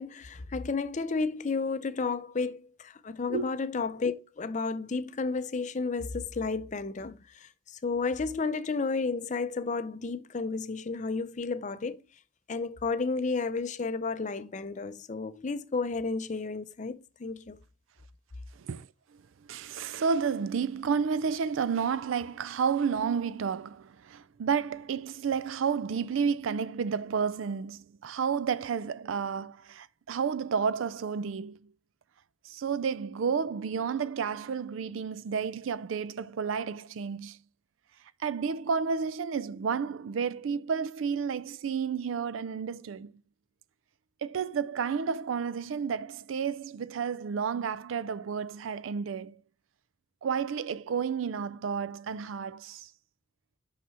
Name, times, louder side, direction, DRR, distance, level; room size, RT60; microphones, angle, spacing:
voice 1, 0.0-12.0 12.5-17.6, left 4 dB, 35° left, 0.5 m, -32 dB
voice 2, 18.6-31.7 32.4-37.4 38.2-43.2 44.2-49.4 50.2-52.9, right 6 dB, 85° right, 0.4 m, -31 dB
5.9 x 5.8 x 4.3 m
head